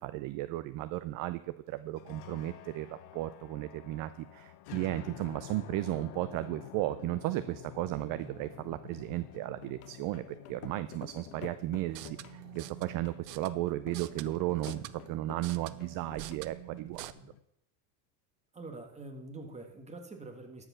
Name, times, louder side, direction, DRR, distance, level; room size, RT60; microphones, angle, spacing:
voice 1, 0.0-1.4 1.7-17.1, right 16 dB, 45° right, 13 dB, 0.5 m, -35 dB
sound 1, 1.8-17.4, left 14 dB, 55° left, 0.9 m, -51 dB
sound 2, 9.6-16.4, left 14 dB, 35° left, 0.4 m, -50 dB
sound 3, 11.8-17.1, right 17 dB, 85° right, 0.7 m, -47 dB
voice 2, 18.5-20.7, right 2 dB, 15° right, 3 dB, 1.7 m, -45 dB
12.5 x 4.9 x 6.2 m, 0.79 s
supercardioid pair, 115°, 48 cm